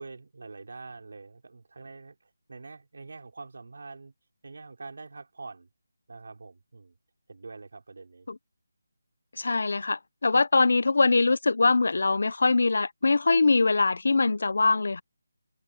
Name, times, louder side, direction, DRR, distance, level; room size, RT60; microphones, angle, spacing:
voice 1, 0.0-4.1 4.4-5.7 6.1-6.9 7.3-8.3 10.3-10.4, right 3 dB, 60° right, 5.4 m, -45 dB
voice 2, 9.4-15.0, left 3 dB, 65° left, 0.8 m, -23 dB
figure-of-eight pair, 170°, 0 cm